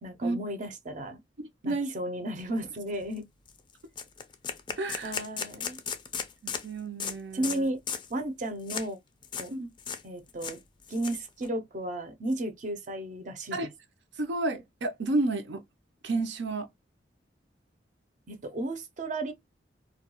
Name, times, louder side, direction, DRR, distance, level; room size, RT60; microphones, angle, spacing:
voice 1, 0.0-1.2 1.6-3.2 5.0-5.8 7.3-7.8 8.1-9.0 9.4-9.5 10.0-10.6 10.9-13.7 18.3-19.3, right 1 dB, 45° right, 0.6 m, -34 dB
sound 1, 2.6-2.7 3.0-3.2 3.5-3.6 4.0-6.7 7.0-7.2 7.4-7.6 7.9-8.1 8.7-8.9 9.2-9.5 9.8-10.0 10.3-11.5, left 6 dB, 25° left, 0.3 m, -36 dB
voice 2, 4.8-5.1 6.4-7.7 9.5-9.7 13.5-13.7 14.2-15.6 16.0-16.7, right 2 dB, 85° right, 0.6 m, -31 dB
2.3 x 2.2 x 2.8 m
head